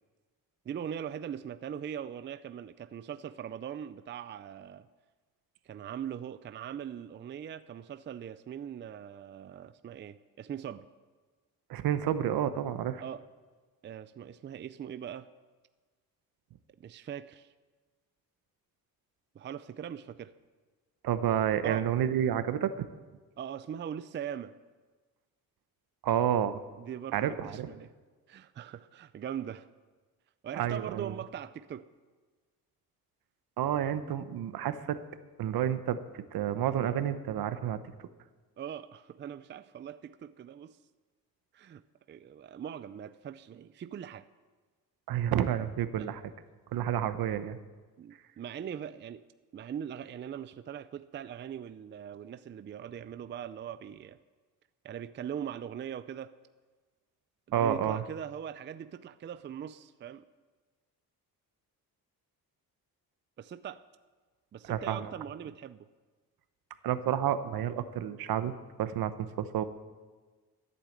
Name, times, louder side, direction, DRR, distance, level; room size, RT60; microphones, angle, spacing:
voice 1, 0.7-4.9 5.6-10.9 13.0-13.2 13.8-15.3 16.8-17.5 19.3-20.3 21.6-21.9 23.4-24.6 26.8-27.9 28.3-29.7 30.4-31.9 38.6-40.8 41.5-41.8 42.1-44.3 46.0-46.1 48.0-49.2 49.5-54.2 54.8-56.3 57.5-60.2 63.4-63.8 64.5-65.9, right 9 dB, 30° right, 12 dB, 0.4 m, -41 dB
voice 2, 11.7-13.0 21.0-22.9 26.0-26.6 27.1-27.7 30.5-31.1 33.6-35.0 35.4-37.8 45.1-46.2 46.7-47.6 57.5-58.0 64.7-65.1 66.8-68.5 68.8-69.6, right 10 dB, 75° right, 11 dB, 1.0 m, -30 dB
14.0 x 8.5 x 7.9 m, 1.4 s
cardioid pair, 120°, 36 cm